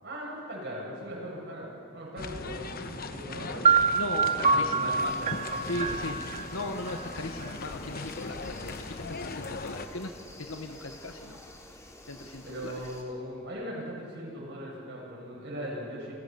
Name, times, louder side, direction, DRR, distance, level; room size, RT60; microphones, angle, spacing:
voice 1, 0.0-3.7 4.5-5.9 12.4-16.1, equal, 55° right, -3 dB, 7.8 m, -39 dB
sound 1, 2.2-9.9, left 3 dB, 45° left, 1.1 m, -39 dB
sound 2, 3.6-7.5, right 5 dB, 35° right, 0.9 m, -26 dB
voice 2, 3.9-5.3 5.7-11.4 12.1-12.7, left 2 dB, 75° left, 5 dB, 1.3 m, -38 dB
sound 3, 5.0-13.0, left 1 dB, 15° left, 2.9 m, -49 dB
29.0 x 16.5 x 7.0 m, 2.4 s
head